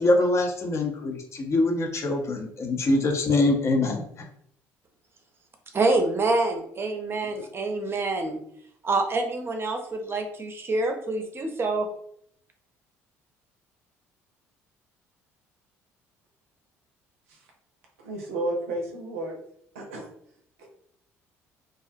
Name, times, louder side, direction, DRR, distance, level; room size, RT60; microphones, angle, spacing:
voice 1, 0.0-4.3, left 2 dB, 40° left, 3 dB, 0.6 m, -24 dB
voice 2, 5.7-8.4 8.8-11.9, right 2 dB, 35° right, 4 dB, 0.6 m, -26 dB
voice 3, 18.0-19.4 19.7-20.1 20.6-20.7, right 1 dB, 85° right, 1 dB, 0.5 m, -32 dB
2.3 x 2.1 x 2.5 m, 0.68 s
hypercardioid pair, 60°, 7 cm